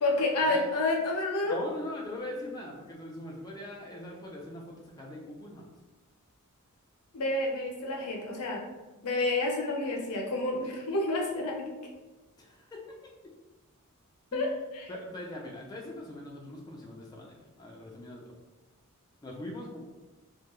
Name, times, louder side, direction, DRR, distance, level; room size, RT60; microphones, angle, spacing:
voice 1, 0.0-1.6 7.1-8.6 9.0-11.7 14.3-14.5 14.7-14.9, left 2 dB, 85° left, 0 dB, 0.6 m, -29 dB
voice 2, 1.5-5.6 12.4-12.8 14.3-18.3 19.2-19.8, left 1 dB, 20° left, -2 dB, 0.3 m, -41 dB
2.2 x 2.2 x 2.9 m, 1.1 s
head